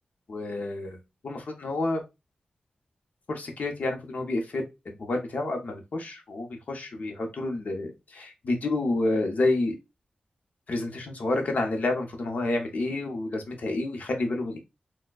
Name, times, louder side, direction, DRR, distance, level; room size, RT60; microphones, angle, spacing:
voice 1, 0.3-1.0 1.2-2.0 3.3-4.6 5.0-9.8 10.7-14.6, left 2 dB, 60° left, 3 dB, 0.8 m, -29 dB
4.2 x 2.2 x 2.4 m, 0.25 s
wide cardioid pair, 95°, 3 cm